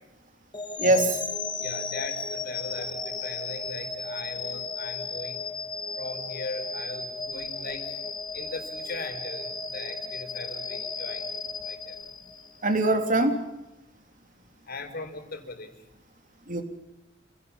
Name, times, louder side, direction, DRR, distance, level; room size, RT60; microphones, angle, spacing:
sound 1, 0.5-12.7, left 4 dB, 25° left, 1.9 m, -35 dB
voice 1, 0.8-1.2 12.6-13.4 16.5-16.6, right 2 dB, 45° right, 5 dB, 3.3 m, -23 dB
voice 2, 1.6-5.4 6.0-8.0 8.3-11.3 11.6-12.0 14.6-15.7, left 3 dB, 55° left, 5 dB, 4.7 m, -39 dB
30.0 x 18.0 x 7.2 m, 0.93 s
head